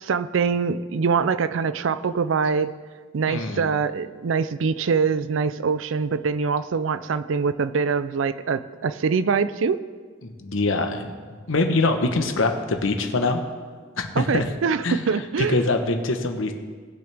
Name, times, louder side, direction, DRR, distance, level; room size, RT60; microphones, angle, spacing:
voice 1, 0.0-2.7 3.1-9.8 14.2-15.6, right 5 dB, 80° right, 14 dB, 0.4 m, -24 dB
voice 2, 3.3-3.7 10.2-11.2 11.5-13.4 14.0-14.5 14.8-16.5, left 2 dB, 90° left, 5 dB, 1.1 m, -24 dB
19.5 x 6.9 x 3.4 m, 1.5 s
head